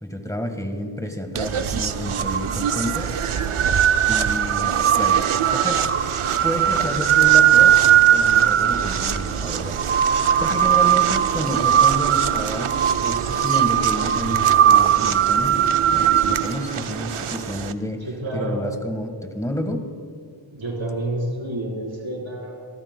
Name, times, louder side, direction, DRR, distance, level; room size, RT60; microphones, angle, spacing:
voice 1, 0.0-3.1 3.7-3.8 4.1-5.2 5.5-5.8 6.4-7.8 8.1-9.8 10.0-18.1 18.3-19.9, equal, 5° left, 5 dB, 1.4 m, -30 dB
sound 1, 1.4-17.7, right 10 dB, 90° right, 0.6 m, -19 dB
voice 2, 18.0-18.6 20.5-22.7, right 1 dB, 70° right, -2 dB, 3.9 m, -29 dB
27.5 x 13.5 x 2.2 m, 2.3 s
wide cardioid pair, 60°, 49 cm